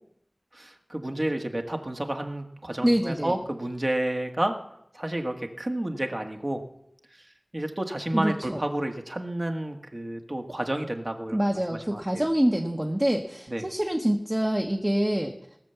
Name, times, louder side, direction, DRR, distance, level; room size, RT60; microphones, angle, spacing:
voice 1, 0.5-4.5 4.9-6.6 7.1-7.3 7.5-11.4 11.7-12.3 13.5-13.6, right 1 dB, 40° right, 4 dB, 1.6 m, -30 dB
voice 2, 2.8-3.3 8.1-8.6 11.3-15.3, equal, 20° right, 2 dB, 1.2 m, -25 dB
18.0 x 7.0 x 6.9 m, 0.76 s
wide cardioid pair, 50°, 0 cm